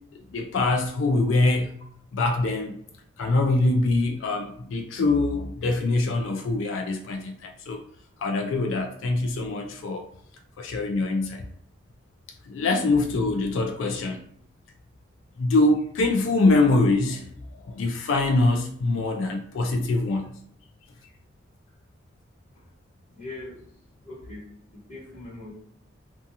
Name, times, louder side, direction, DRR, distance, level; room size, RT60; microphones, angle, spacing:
voice 1, 0.3-1.7 2.1-2.8 3.2-7.8 8.2-10.1 10.6-11.4 12.5-14.2 15.4-17.3 17.6-20.3, left 2 dB, 75° left, 3 dB, 0.3 m, -24 dB
voice 2, 23.1-23.6 24.0-24.5 24.7-25.5, left 2 dB, 35° left, -10 dB, 1.1 m, -41 dB
2.5 x 2.3 x 2.7 m, 0.66 s
head